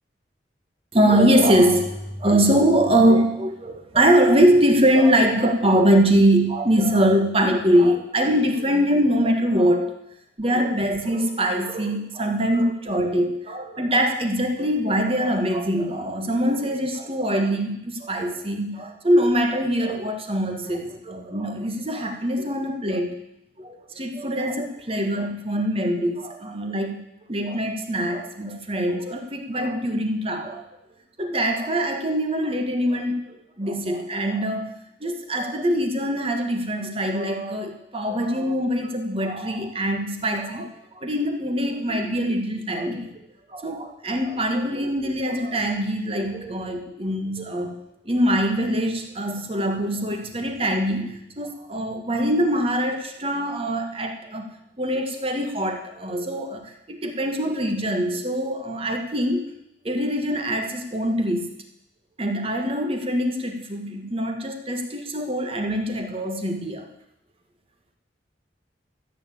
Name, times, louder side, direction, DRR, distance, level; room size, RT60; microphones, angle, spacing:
voice 1, 0.9-10.0 10.4-23.2 23.6-30.6 31.2-34.7 35.0-43.2 43.5-47.8 48.0-54.5 54.8-59.5 59.8-61.5 62.2-66.9, equal, 30° right, 4 dB, 1.5 m, -23 dB
13.5 x 7.0 x 8.6 m, 0.80 s
head